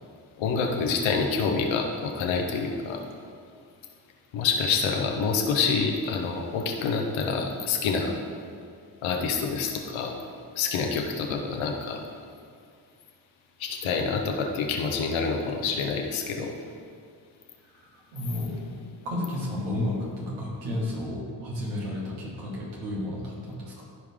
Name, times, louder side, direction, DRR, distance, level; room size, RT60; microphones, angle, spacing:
voice 1, 0.4-3.0 4.3-8.2 9.0-10.2 10.5-12.0 13.6-16.6, left 5 dB, 80° left, 2 dB, 1.1 m, -27 dB
voice 2, 17.7-18.7 19.0-23.8, left 1 dB, 85° right, -4 dB, 1.9 m, -32 dB
13.5 x 4.9 x 3.6 m, 2.3 s
hypercardioid pair, 45°, 46 cm